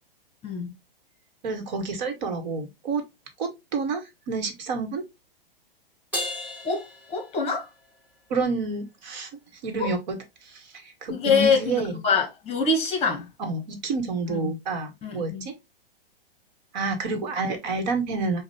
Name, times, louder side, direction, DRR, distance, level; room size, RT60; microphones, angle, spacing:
voice 1, 0.4-0.7 6.6-7.7 9.8-9.9 11.1-13.3 14.3-14.5 15.0-15.5, left 4 dB, 20° left, 1.3 m, -25 dB
voice 2, 1.4-3.0 3.4-5.0 8.3-9.3 9.6-12.0 13.4-15.5 16.7-18.4, right 4 dB, 50° right, 1.4 m, -29 dB
Crash cymbal, 6.1-7.9, left 1 dB, 5° right, 2.8 m, -34 dB
6.4 x 2.4 x 3.1 m
figure-of-eight pair, 115°, 30 cm